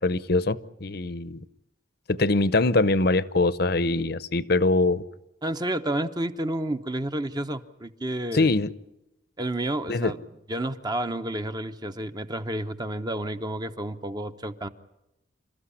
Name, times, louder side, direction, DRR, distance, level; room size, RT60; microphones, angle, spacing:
voice 1, 0.0-1.4 2.1-5.0 8.3-8.7 9.9-10.1, left 2 dB, 55° left, 0.8 m, -23 dB
voice 2, 5.4-8.5 9.4-10.2 10.5-14.7, right 1 dB, 20° right, 0.9 m, -30 dB
28.0 x 14.0 x 10.0 m
head